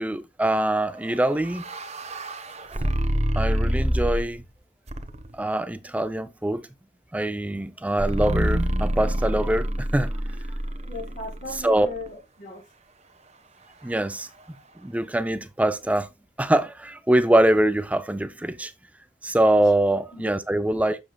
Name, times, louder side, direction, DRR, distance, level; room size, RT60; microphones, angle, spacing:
voice 1, 0.0-1.6 3.4-4.4 5.3-6.6 7.1-10.1 11.6-11.9 13.8-14.3 14.8-16.1 16.4-18.7 19.2-21.0, right 1 dB, 10° right, 0.4 m, -23 dB
sound 1, 1.1-4.4 4.9-5.4 8.0-12.1, equal, 40° right, 1.1 m, -27 dB
voice 2, 10.9-12.6 13.8-13.9 20.1-20.6, left 2 dB, 50° left, 4.3 m, -38 dB
11.5 x 7.0 x 2.2 m
head